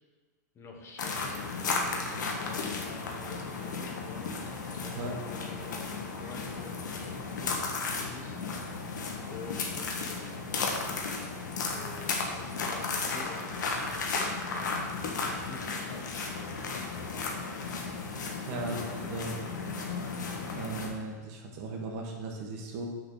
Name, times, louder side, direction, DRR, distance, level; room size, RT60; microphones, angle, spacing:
voice 1, 0.5-4.3 4.7-7.6 8.1-8.5 9.3-10.8 11.7-14.9 15.4-16.1 18.5-18.7 19.0-19.6, left 4 dB, 25° left, 1 dB, 1.5 m, -48 dB
sound 1, 1.0-20.9, left 4 dB, 85° left, 1.5 m, -34 dB
voice 2, 18.5-19.3 20.5-22.9, right 2 dB, 55° right, 1 dB, 1.8 m, -37 dB
6.8 x 5.3 x 6.6 m, 1.4 s
hypercardioid pair, 120°, 10 cm